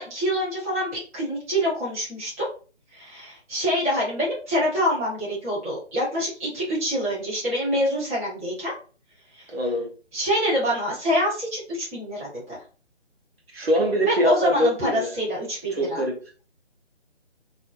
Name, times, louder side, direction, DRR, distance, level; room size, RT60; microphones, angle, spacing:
voice 1, 0.0-2.4 2.9-8.7 9.3-9.5 10.1-12.6 14.0-16.0, equal, 15° right, -8 dB, 1.0 m, -26 dB
voice 2, 9.5-9.9 13.5-15.1 15.7-16.2, equal, 60° right, 1 dB, 1.0 m, -23 dB
4.1 x 2.6 x 2.5 m, 0.38 s
figure-of-eight pair, 150°, 34 cm